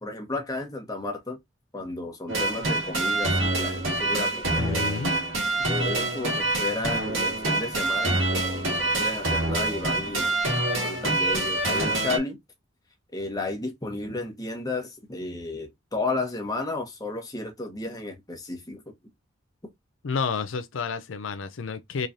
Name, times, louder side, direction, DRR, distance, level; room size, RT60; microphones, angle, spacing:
voice 1, 0.0-1.4 1.7-4.9 5.7-10.3 10.8-12.4 13.1-18.8, left 2 dB, 20° left, 1.1 m, -33 dB
sound 1, 2.3-12.2, right 2 dB, 85° right, 1.9 m, -26 dB
voice 2, 4.6-5.1 20.0-22.1, left 5 dB, 75° left, 0.5 m, -30 dB
3.7 x 3.1 x 2.6 m
head